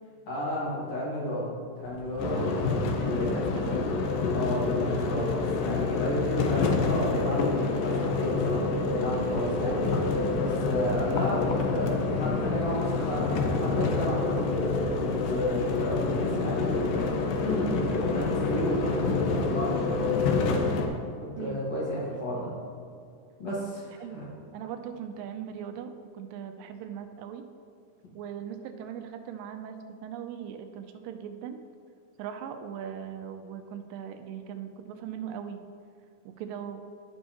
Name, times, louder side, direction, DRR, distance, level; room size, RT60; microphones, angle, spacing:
voice 1, 0.3-3.4 4.3-8.6 8.9-9.8 10.3-14.4 15.0-17.1 17.4-20.6 21.4-22.5 23.4-24.2, equal, 50° left, -6 dB, 2.7 m, -32 dB
sound 1, 1.8-4.0 6.0-20.4, right 3 dB, 65° right, 1.6 m, -42 dB
sound 2, 2.2-20.9, left 4 dB, 80° left, 2.5 m, -27 dB
voice 2, 2.9-3.9 9.2-9.5 21.3-21.7 23.5-24.2 24.5-27.4 28.1-31.6 32.2-35.6 36.3-36.8, right 8 dB, 85° right, 7 dB, 2.2 m, -39 dB
16.0 x 5.5 x 2.9 m, 2.4 s
omnidirectional pair, 4.0 m